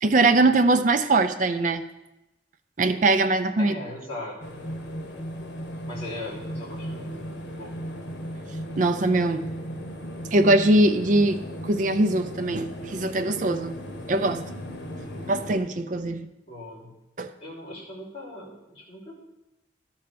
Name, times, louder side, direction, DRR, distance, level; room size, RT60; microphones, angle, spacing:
voice 1, 0.0-1.8 2.8-3.8 8.8-9.4 10.3-11.4 11.6-13.7 14.1-14.4 15.3-16.3 17.2-17.3, right 2 dB, 45° right, 8 dB, 0.5 m, -21 dB
voice 2, 3.6-4.6 5.8-7.8 15.0-15.2 16.4-16.9 17.4-19.2, left 1 dB, 35° left, -8 dB, 3.2 m, -39 dB
sound 1, 4.4-15.6, equal, 80° left, 1.2 m, -36 dB
12.5 x 4.4 x 5.1 m, 0.93 s
head